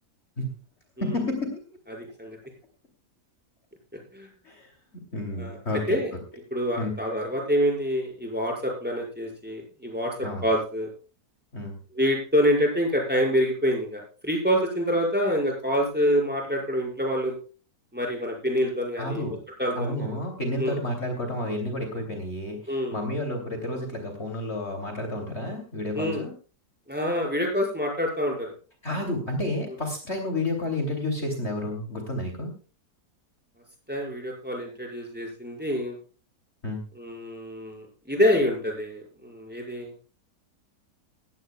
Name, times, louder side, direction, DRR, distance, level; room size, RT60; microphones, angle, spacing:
voice 1, 1.0-1.5 4.4-4.7 5.1-6.0 6.7-6.9 10.2-10.5 11.5-11.8 19.0-19.4 19.7-26.3 28.8-32.5 36.6-36.8, left 1 dB, 40° left, 3 dB, 3.2 m, -30 dB
voice 2, 1.9-2.4 4.1-4.3 5.4-6.1 6.5-10.9 11.9-17.3 17.9-19.2 19.6-20.2 20.6-20.8 22.7-23.0 25.9-26.2 26.9-28.5 33.9-36.0 37.0-39.9, equal, 5° right, 0 dB, 5.7 m, -26 dB
20.0 x 15.5 x 2.3 m, 0.36 s
omnidirectional pair, 1.7 m